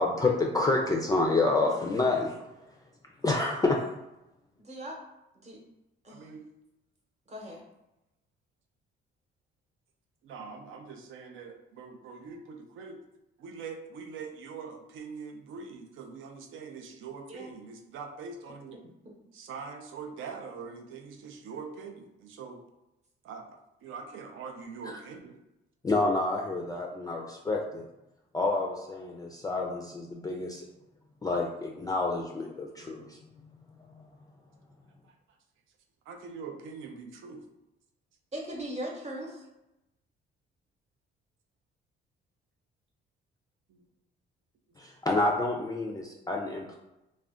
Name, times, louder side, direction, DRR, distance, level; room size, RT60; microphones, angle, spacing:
voice 1, 0.0-2.3 3.2-3.8 24.9-25.0 25.8-27.9 28.3-30.6 31.2-33.2 44.8-46.7, left 2 dB, 20° left, 0 dB, 0.3 m, -28 dB
voice 2, 4.7-5.0 5.4-5.6 6.0-6.3 7.3-7.6 17.3-17.5 38.3-39.4, right 1 dB, 35° right, -1 dB, 0.9 m, -38 dB
voice 3, 6.1-6.4 10.2-13.0 13.4-18.8 19.3-22.6 23.2-23.4 23.8-25.4 35.0-35.1 36.1-37.4 43.7-43.8, right 5 dB, 80° right, 4 dB, 0.5 m, -43 dB
2.4 x 2.1 x 3.5 m, 0.92 s
cardioid pair, 90°, 20 cm